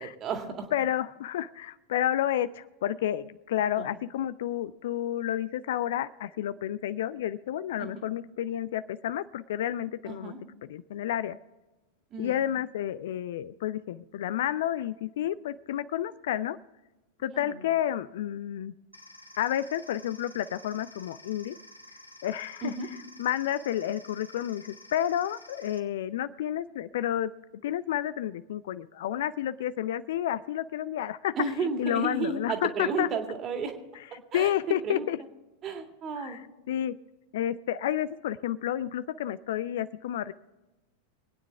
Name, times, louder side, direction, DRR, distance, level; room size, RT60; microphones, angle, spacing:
voice 1, 0.0-0.7 3.8-3.9 7.8-8.1 10.0-10.4 12.1-12.4 17.3-17.6 22.6-22.9 31.4-33.7 34.3-35.1 35.6-36.4, right 4 dB, 30° right, 5 dB, 2.1 m, -33 dB
voice 2, 0.7-10.3 10.7-11.4 12.2-16.6 17.2-18.7 19.4-21.6 22.2-22.7 23.2-27.3 27.6-31.4 31.8-33.1 34.3-35.2 36.2-36.4 36.7-37.0 37.3-40.3, left 11 dB, 55° left, 16 dB, 0.4 m, -30 dB
sound 1, 18.9-25.8, left 1 dB, 90° left, 1.1 m, -51 dB
25.0 x 9.5 x 3.4 m, 1.1 s
figure-of-eight pair, 90°, 0 cm